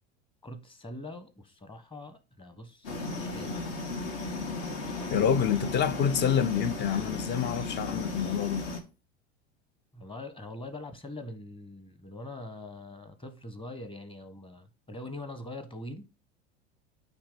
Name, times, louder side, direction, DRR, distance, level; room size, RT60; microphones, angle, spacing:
voice 1, 0.4-3.7 9.9-16.1, left 2 dB, 15° left, 1.3 m, -43 dB
sound 1, 2.8-8.8, left 3 dB, 60° left, 1.7 m, -35 dB
voice 2, 5.1-8.7, left 8 dB, 30° left, 0.6 m, -27 dB
8.7 x 3.0 x 5.1 m
figure-of-eight pair, 80°, 34 cm